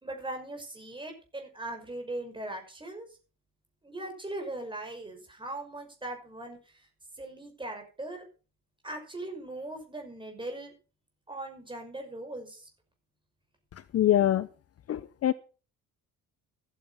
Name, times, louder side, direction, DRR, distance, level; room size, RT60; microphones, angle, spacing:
voice 1, 0.0-3.1 3.8-6.8 7.1-8.2 8.8-10.7 11.3-12.7, right 2 dB, 15° right, 4 dB, 5.7 m, -39 dB
voice 2, 13.9-14.5 14.9-15.3, left 12 dB, 45° left, 15 dB, 0.7 m, -24 dB
14.0 x 9.2 x 5.8 m, 0.36 s
cardioid pair, 110°, 35 cm